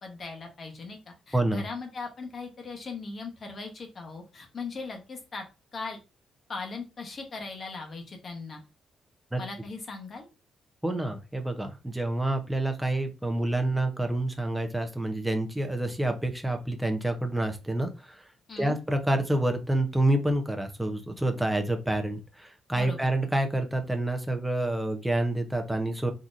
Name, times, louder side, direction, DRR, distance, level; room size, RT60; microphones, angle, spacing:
voice 1, 0.0-5.4 5.7-6.0 6.5-8.6 9.4-10.3 18.5-18.8 22.7-23.1, left 4 dB, 40° left, 3 dB, 1.0 m, -39 dB
voice 2, 10.8-18.2 18.6-26.1, right 1 dB, 5° right, 4 dB, 0.6 m, -28 dB
3.8 x 2.9 x 2.5 m, 0.29 s
cardioid pair, 125°, 0 cm